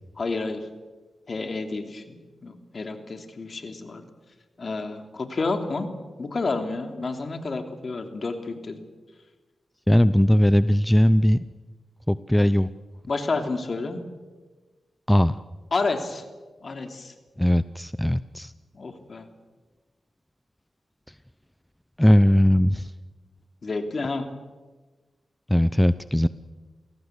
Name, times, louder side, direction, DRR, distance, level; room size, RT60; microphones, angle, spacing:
voice 1, 0.2-0.6 1.3-4.0 4.6-5.9 6.2-8.8 13.1-14.0 15.7-16.2 16.6-17.1 18.7-19.2 23.6-24.3, left 3 dB, 50° left, 7 dB, 3.3 m, -30 dB
voice 2, 9.9-11.4 12.1-12.7 15.1-15.4 17.4-18.5 22.0-22.9 25.5-26.3, equal, 5° left, 15 dB, 0.7 m, -19 dB
28.5 x 17.5 x 8.3 m, 1.3 s
cardioid pair, 60°, 0 cm